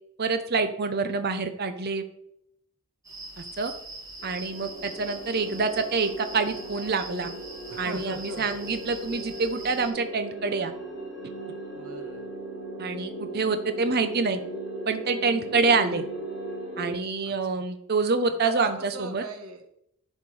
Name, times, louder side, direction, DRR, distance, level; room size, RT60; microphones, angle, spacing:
voice 1, 0.2-2.0 3.4-3.7 4.2-7.3 7.8-10.7 12.8-14.4 14.9-16.0 16.8-19.2, right 4 dB, 45° right, 9 dB, 0.7 m, -26 dB
sound 1, 3.0-9.9, right 2 dB, 15° right, 1.6 m, -43 dB
sound 2, 4.2-16.9, right 2 dB, 60° left, 3.6 m, -38 dB
voice 2, 7.7-8.6 11.7-12.3 17.2-17.7 18.4-19.8, right 2 dB, 70° right, 5 dB, 1.3 m, -40 dB
10.5 x 4.4 x 4.9 m, 0.75 s
head